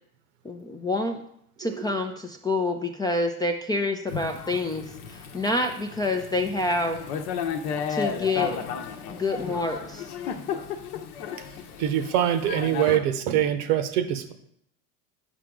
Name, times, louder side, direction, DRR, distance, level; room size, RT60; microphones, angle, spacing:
voice 1, 0.4-1.2 1.6-4.8 5.1-7.0 7.9-8.6 9.1-10.1, left 2 dB, 10° left, 4 dB, 0.3 m, -27 dB
Thunder / Rain, 4.1-13.0, left 7 dB, 70° left, 0.9 m, -34 dB
voice 2, 11.8-14.3, right 10 dB, 75° right, 10 dB, 0.9 m, -24 dB
7.2 x 4.9 x 3.6 m, 0.71 s
hypercardioid pair, 85°, 46 cm